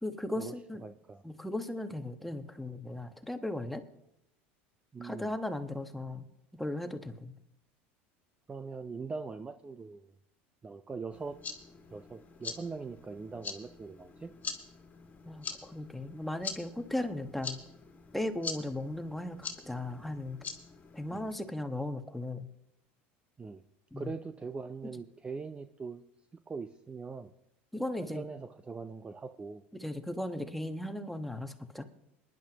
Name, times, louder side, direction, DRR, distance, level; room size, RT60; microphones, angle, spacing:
voice 1, 0.0-0.8 1.2-3.8 5.0-6.2 6.5-7.3 15.2-17.6 18.1-20.4 20.9-22.5 23.9-24.1 27.7-28.2 29.7-31.8, left 1 dB, ahead, 6 dB, 1.2 m, -37 dB
voice 2, 0.8-1.2 4.9-5.3 8.5-10.1 10.6-11.4 11.9-14.3 21.1-21.2 23.4-23.6 24.0-26.0 26.5-27.3 28.0-29.6, right 4 dB, 20° right, 9 dB, 0.6 m, -41 dB
sound 1, 11.1-21.3, left 5 dB, 25° left, 2.1 m, -44 dB
22.0 x 11.0 x 3.0 m, 0.80 s
supercardioid pair, 105°, 6 cm